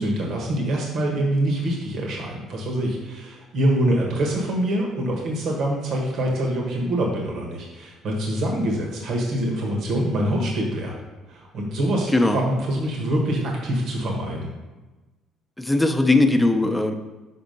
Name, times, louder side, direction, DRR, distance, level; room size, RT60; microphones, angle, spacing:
voice 1, 0.0-10.9 11.3-14.5, right 1 dB, 70° right, 0 dB, 1.3 m, -25 dB
voice 2, 15.6-17.0, left 2 dB, 10° left, 5 dB, 0.7 m, -19 dB
6.1 x 4.3 x 5.4 m, 1.2 s
supercardioid pair, 85°, 0 cm